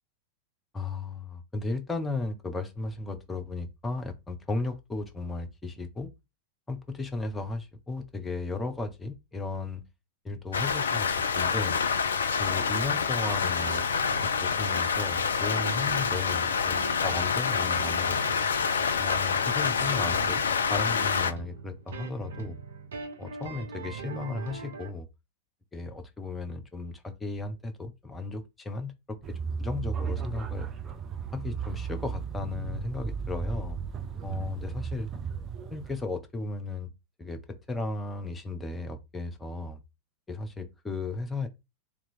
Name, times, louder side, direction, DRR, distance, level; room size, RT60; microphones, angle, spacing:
voice 1, 0.7-6.1 6.7-9.8 10.2-11.8 12.4-13.8 14.4-18.2 19.0-20.4 20.7-22.6 23.2-25.1 25.7-30.7 31.3-33.8 34.2-35.1 35.7-36.9 37.2-37.4 37.7-39.8 40.3-41.5, left 3 dB, 10° left, 0.7 m, -35 dB
Rain, 10.5-21.3, left 6 dB, 70° left, 0.3 m, -27 dB
sound 1, 13.3-24.9, right 5 dB, 65° right, 0.6 m, -43 dB
sound 2, 29.2-36.0, right 6 dB, 25° right, 0.5 m, -35 dB
2.8 x 2.6 x 4.2 m
figure-of-eight pair, 90°, 0 cm